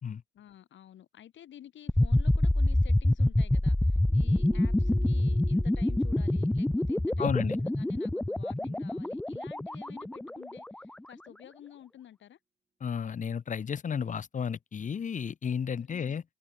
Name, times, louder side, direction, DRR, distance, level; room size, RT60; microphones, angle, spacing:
voice 1, 0.3-12.4 15.8-16.2, left 11 dB, 70° left, 6.0 m, -51 dB
sound 1, 1.9-10.8, left 1 dB, 5° left, 0.3 m, -27 dB
sound 2, 4.0-9.2 9.5-9.6, right 4 dB, 25° right, 4.4 m, -50 dB
voice 2, 7.2-7.6 12.8-16.2, left 7 dB, 40° left, 1.0 m, -32 dB
open air
cardioid pair, 90°, 20 cm